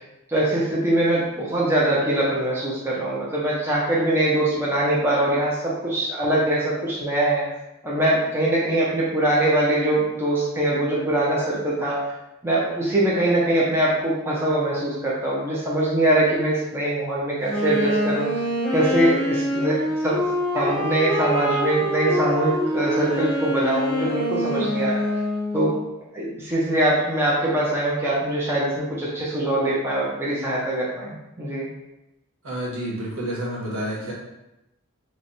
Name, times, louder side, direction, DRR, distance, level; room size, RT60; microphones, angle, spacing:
voice 1, 0.3-7.4 7.8-12.0 12.4-18.3 18.7-19.8 20.0-20.2 20.5-25.0 25.5-25.7 26.1-31.7, right 1 dB, 10° right, -6 dB, 0.6 m, -22 dB
Wind instrument woodwind instrument, 17.4-25.8, equal, 5° left, 1.0 m, -25 dB
voice 2, 32.4-34.1, right 1 dB, 70° right, -5 dB, 1.2 m, -29 dB
3.1 x 2.2 x 4.0 m, 0.92 s
head